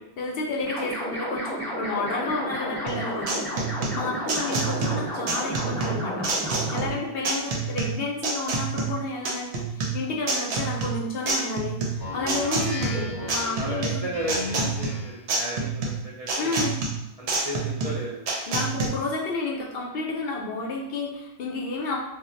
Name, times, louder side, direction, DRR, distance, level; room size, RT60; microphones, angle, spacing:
voice 1, 0.2-3.4 3.9-6.3 6.7-9.6 9.9-11.8 12.1-14.1 16.4-16.8 18.5-22.0, left 3 dB, 65° left, -2 dB, 0.7 m, -30 dB
sound 1, 0.6-6.9, equal, ahead, 0.7 m, -32 dB
sound 2, 2.9-18.9, right 3 dB, 75° right, 0.8 m, -28 dB
Speech synthesizer, 12.0-15.3, left 3 dB, 35° left, 0.4 m, -35 dB
voice 2, 12.9-16.6 17.2-18.2, equal, 45° right, -7 dB, 0.5 m, -35 dB
2.2 x 2.0 x 3.7 m, 0.90 s
omnidirectional pair, 1.1 m